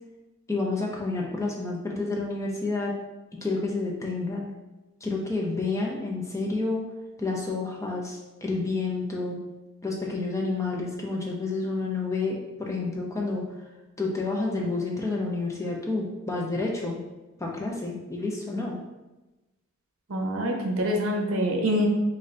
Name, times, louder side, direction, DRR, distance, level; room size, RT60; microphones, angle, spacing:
voice 1, 0.5-2.9 3.3-4.5 5.0-6.8 7.2-9.4 9.8-13.5 14.0-17.0 17.4-18.8, left 3 dB, 15° left, -2 dB, 0.5 m, -29 dB
voice 2, 20.1-21.9, equal, 70° right, 2 dB, 0.7 m, -25 dB
3.8 x 2.6 x 3.2 m, 1.1 s
head